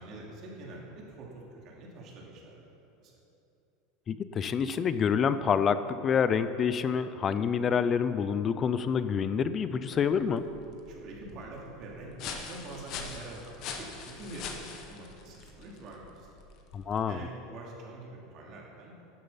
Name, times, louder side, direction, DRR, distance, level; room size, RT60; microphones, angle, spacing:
voice 1, 0.0-2.6 3.0-3.1 10.9-14.5 14.9-16.3 17.1-18.9, right 2 dB, 45° right, -3 dB, 2.8 m, -45 dB
voice 2, 4.1-10.4 16.7-17.3, left 7 dB, 30° left, 12 dB, 0.5 m, -27 dB
sound 1, 9.8-17.2, left 5 dB, 50° left, 1.4 m, -44 dB
12.0 x 7.9 x 5.7 m, 2.8 s
supercardioid pair, 125°, 0 cm